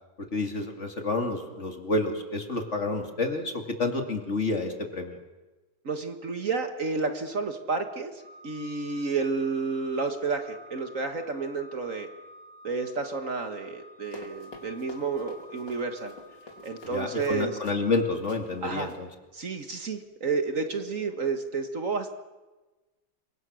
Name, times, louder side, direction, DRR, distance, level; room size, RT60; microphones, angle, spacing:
voice 1, 0.2-5.2 16.9-19.1, left 3 dB, 40° left, 4 dB, 2.6 m, -29 dB
voice 2, 5.9-8.1 8.4-12.1 12.6-16.1 16.6-17.6 18.6-18.9 19.3-22.1, right 4 dB, 50° right, 7 dB, 1.8 m, -30 dB
Organ, 8.2-18.9, left 1 dB, 80° right, 5.1 m, -51 dB
Run, 14.0-18.0 18.3-18.4 18.8-19.0, left 2 dB, 85° left, 3.7 m, -47 dB
28.5 x 24.5 x 6.3 m, 1.2 s
omnidirectional pair, 1.9 m